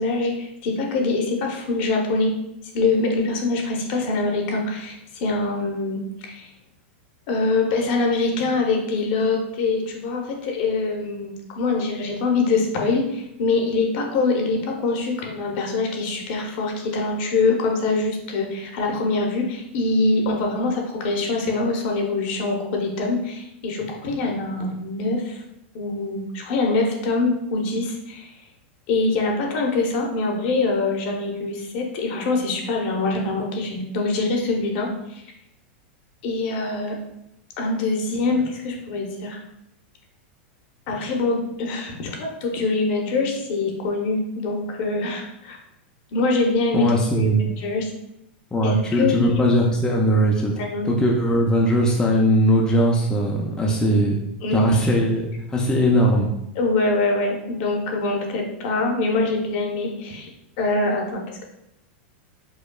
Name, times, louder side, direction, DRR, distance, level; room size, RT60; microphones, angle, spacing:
voice 1, 0.0-2.3 2.7-6.5 7.3-25.4 25.7-28.3 28.9-35.2 36.2-37.0 37.6-39.4 40.9-45.6 46.1-46.9 47.2-47.9 48.6-49.4 50.6-50.9 54.4-54.6 56.5-60.3 60.6-61.4, left 3 dB, 55° left, 1 dB, 0.8 m, -24 dB
voice 2, 46.7-47.4 48.5-50.5 50.8-54.2 54.5-56.3, equal, 10° left, -2 dB, 0.4 m, -19 dB
4.8 x 2.2 x 2.3 m, 0.81 s
supercardioid pair, 135°, 6 cm